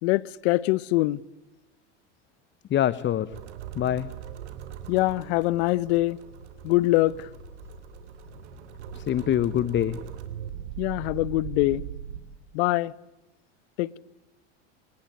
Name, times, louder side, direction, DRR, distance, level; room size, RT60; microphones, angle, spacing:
voice 1, 0.0-1.2 4.9-6.2 6.6-7.3 10.8-11.8 12.5-12.9 13.8-14.0, left 19 dB, 65° left, 0.9 m, -24 dB
voice 2, 2.7-3.3 3.7-4.1 8.9-10.0, left 11 dB, 35° left, 0.9 m, -25 dB
sound 1, 3.3-12.2, right 10 dB, 80° right, 3.1 m, -40 dB
sound 2, 6.2-9.8, left 5 dB, 85° left, 6.1 m, -53 dB
25.5 x 20.0 x 9.5 m
hypercardioid pair, 95°, 34 cm